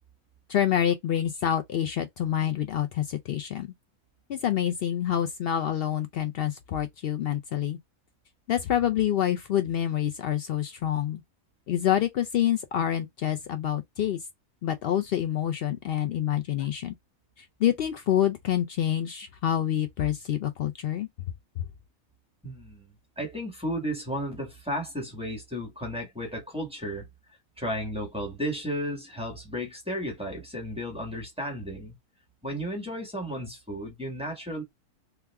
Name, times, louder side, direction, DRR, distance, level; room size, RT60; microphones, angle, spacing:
voice 1, 0.5-3.7 4.3-7.8 8.5-11.2 11.7-14.2 14.6-16.9 17.4-21.1 21.6-21.7, left 10 dB, 85° left, 0.5 m, -27 dB
voice 2, 22.4-22.8 23.2-27.1 27.6-31.9 32.4-34.6, equal, 5° right, 1.4 m, -33 dB
2.9 x 2.4 x 3.4 m
omnidirectional pair, 1.6 m